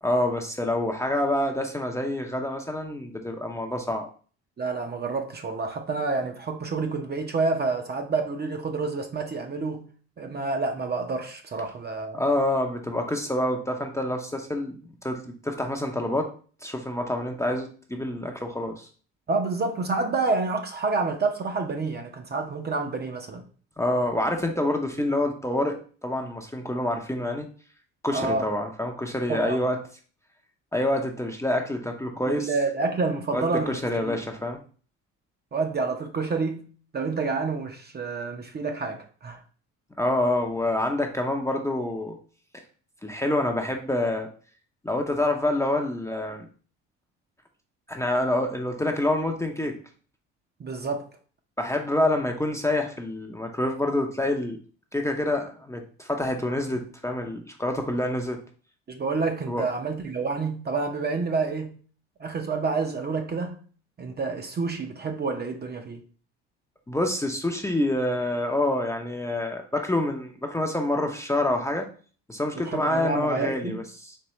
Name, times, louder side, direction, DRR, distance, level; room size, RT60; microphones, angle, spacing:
voice 1, 0.0-4.1 12.1-16.3 16.6-18.9 23.8-27.5 28.0-29.8 30.7-32.5 33.3-34.6 40.0-42.2 43.0-44.3 44.8-46.5 47.9-49.7 51.6-54.6 54.9-58.4 59.5-59.6 66.9-71.9 72.3-74.2, left 1 dB, 10° left, 0.6 m, -27 dB
voice 2, 4.6-9.8 10.2-12.2 19.3-23.4 28.1-28.5 29.3-29.6 32.3-34.1 35.5-36.7 36.9-39.4 50.6-51.1 58.9-61.8 62.2-63.6 64.0-66.0 72.5-73.8, right 4 dB, 30° right, 0.7 m, -28 dB
4.3 x 3.0 x 3.0 m
supercardioid pair, 70°, 33 cm